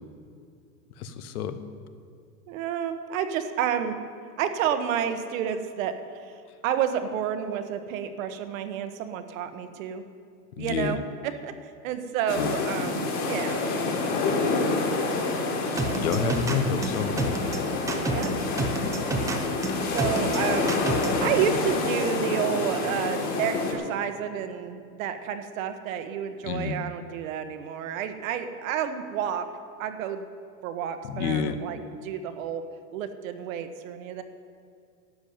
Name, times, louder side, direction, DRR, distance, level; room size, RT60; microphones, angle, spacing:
voice 1, 1.0-1.6 10.6-11.0 12.4-12.5 15.9-17.4 26.4-26.7 31.1-31.6, left 6 dB, 65° left, 10 dB, 1.2 m, -29 dB
voice 2, 2.5-4.0 4.4-10.0 10.6-11.5 11.8-13.7 15.7-16.8 18.1-18.3 19.2-19.4 19.9-29.5 29.8-30.3 30.6-32.6 32.9-34.2, right 8 dB, 55° right, 8 dB, 1.3 m, -30 dB
sound 1, 12.3-23.7, left 3 dB, 35° left, 2.6 m, -28 dB
sound 2, 15.8-21.2, right 2 dB, 5° right, 0.8 m, -29 dB
12.5 x 7.3 x 9.3 m, 2.3 s
supercardioid pair, 140°, 48 cm